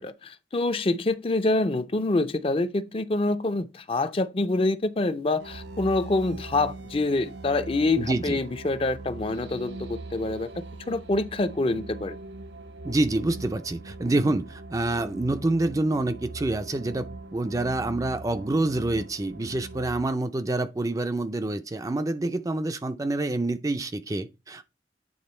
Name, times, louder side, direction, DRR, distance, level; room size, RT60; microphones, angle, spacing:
voice 1, 0.0-10.5 10.9-12.2, left 2 dB, 30° left, 0.5 m, -26 dB
sound 1, 5.4-20.1, right 2 dB, 80° right, 0.7 m, -41 dB
voice 2, 8.0-8.4 12.8-17.1 17.3-24.7, right 2 dB, 20° right, 0.4 m, -27 dB
8.7 x 3.6 x 4.3 m
head